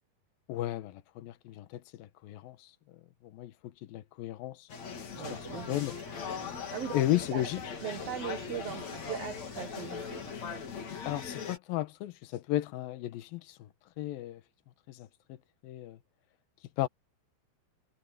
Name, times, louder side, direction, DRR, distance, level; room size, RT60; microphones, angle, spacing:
voice 1, 0.5-4.7 5.3-6.0 6.9-7.6 11.1-13.7 14.0-14.4 14.9-15.4 15.6-16.0 16.8-16.9, left 14 dB, 75° left, 2.8 m, -34 dB
sound 1, 4.7-11.6, left 6 dB, 45° left, 3.9 m, -40 dB
voice 2, 5.1-5.8 6.7-6.9 7.3-7.4 7.8-10.2, right 9 dB, 65° right, 1.6 m, -39 dB
sound 2, 5.3-10.3, right 4 dB, 85° right, 8.2 m, -54 dB
omnidirectional pair, 4.4 m